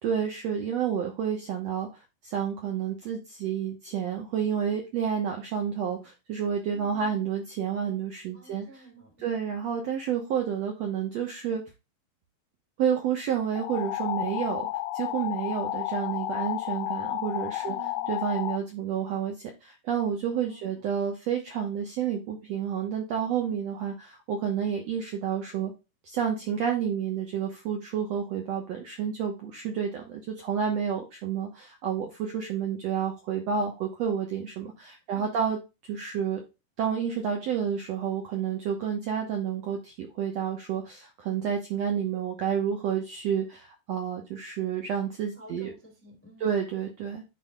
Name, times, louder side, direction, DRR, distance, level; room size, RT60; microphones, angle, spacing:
voice 1, 0.0-1.9 2.2-8.8 9.2-11.6 12.8-14.7 14.9-17.7 18.1-25.7 26.0-35.6 35.9-36.4 36.8-45.7 46.4-47.2, right 8 dB, 65° right, 2 dB, 1.7 m, -30 dB
voice 2, 6.7-7.2 8.3-9.5 17.6-18.2 20.4-20.9 23.4-23.6 35.1-35.5 45.3-46.6, right 3 dB, 5° left, 1 dB, 1.4 m, -51 dB
sound 1, 13.6-18.6, left 15 dB, 80° left, 2.2 m, -32 dB
11.0 x 4.1 x 2.3 m, 0.27 s
omnidirectional pair, 4.2 m